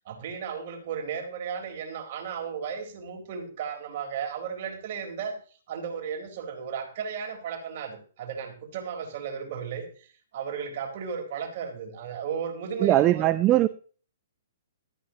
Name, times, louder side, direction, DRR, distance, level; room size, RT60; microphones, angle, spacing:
voice 1, 0.1-5.4 5.7-13.3, right 7 dB, 45° right, 4 dB, 4.1 m, -35 dB
voice 2, 12.8-13.7, right 15 dB, 25° right, 14 dB, 0.6 m, -20 dB
14.0 x 13.0 x 2.9 m, 0.41 s
figure-of-eight pair, 120°, 0 cm